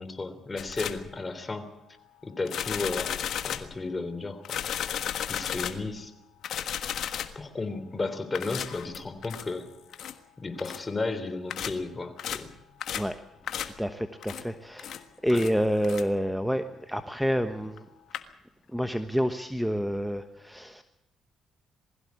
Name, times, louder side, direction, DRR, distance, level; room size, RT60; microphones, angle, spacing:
voice 1, 0.0-1.7 2.2-3.1 3.4-4.6 5.3-6.1 7.3-9.7 10.4-12.5 15.3-15.4, left 3 dB, 25° left, 10 dB, 3.2 m, -33 dB
sound 1, 0.6-1.1 2.5-3.8 4.5-5.9 6.4-7.4 8.3-9.5 9.9-10.2 10.6-10.8 11.5-11.8 12.2-12.5 12.8-13.2 13.5-13.8 14.2-14.5 14.8-15.0 15.3-15.5 15.8-16.1 17.8-17.9 18.1-18.2, left 9 dB, 70° left, 1.4 m, -34 dB
voice 2, 13.8-17.8 18.7-20.8, equal, ahead, 9 dB, 1.2 m, -28 dB
21.0 x 15.5 x 8.3 m, 0.92 s
cardioid pair, 85°, 0 cm